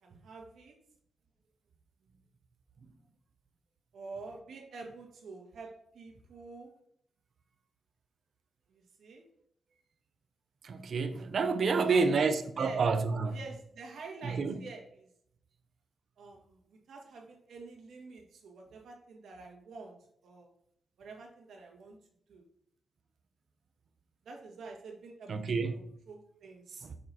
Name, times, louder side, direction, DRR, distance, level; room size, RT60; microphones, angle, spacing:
voice 1, 0.0-0.7 3.9-6.7 8.7-9.2 11.7-12.8 13.3-15.1 16.2-19.9 20.2-20.5 21.0-22.0 22.3-22.4 24.3-25.4 25.7-26.9, right 3 dB, 75° right, 1.9 m, -47 dB
voice 2, 10.6-13.4 14.2-14.6 25.3-25.8 26.8-27.0, right 4 dB, 55° right, 0.7 m, -29 dB
6.9 x 6.4 x 2.9 m
cardioid pair, 100°, 0 cm